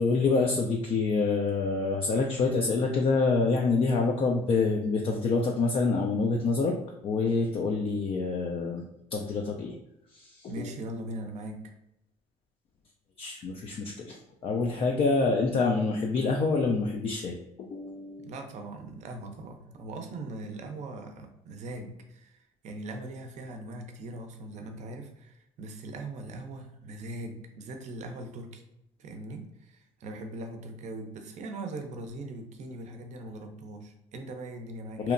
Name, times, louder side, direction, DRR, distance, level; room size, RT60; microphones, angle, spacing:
voice 1, 0.0-6.7 7.0-9.8 10.1-10.7 13.2-18.3 35.0-35.1, left 4 dB, 40° left, 1 dB, 0.4 m, -27 dB
voice 2, 10.5-11.7 18.2-28.6 29.0-35.0, right 2 dB, 55° right, 5 dB, 0.5 m, -40 dB
2.8 x 2.1 x 2.5 m, 0.82 s
supercardioid pair, 80°, 15 cm